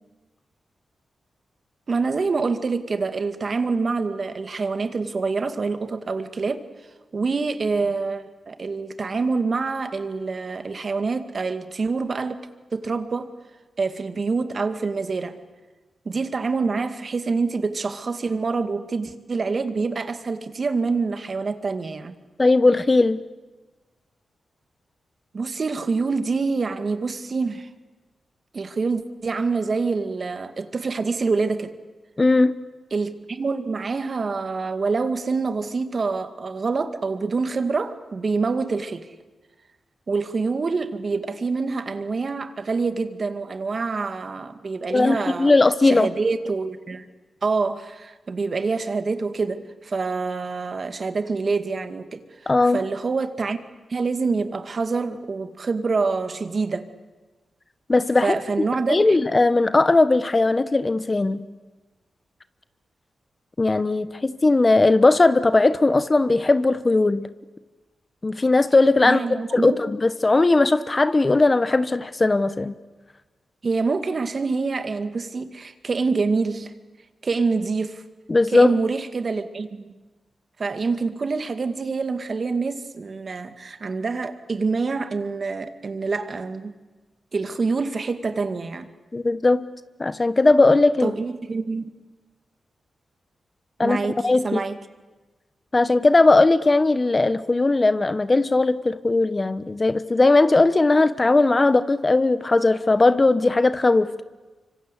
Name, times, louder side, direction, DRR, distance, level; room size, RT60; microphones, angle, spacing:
voice 1, 1.9-6.6 7.1-13.3 13.8-15.4 16.1-22.2 25.3-27.7 28.5-31.7 32.9-39.1 40.1-45.5 45.8-47.1 47.4-53.6 53.9-56.9 58.2-59.0 69.0-69.8 73.6-76.7 77.2-78.0 78.5-79.9 80.6-86.7 87.3-88.9 91.0-91.9 93.8-94.8, right 4 dB, 55° right, 9 dB, 2.2 m, -26 dB
voice 2, 22.4-23.2 32.2-32.5 44.9-46.1 52.5-52.8 57.9-58.3 58.9-61.5 63.6-67.3 68.2-69.2 69.5-72.7 78.3-78.7 89.1-89.6 90.0-91.1 93.8-94.0 94.2-94.6 95.7-104.1, left 2 dB, 35° left, 13 dB, 1.2 m, -18 dB
25.5 x 25.0 x 8.3 m, 1.2 s
cardioid pair, 55°, 0 cm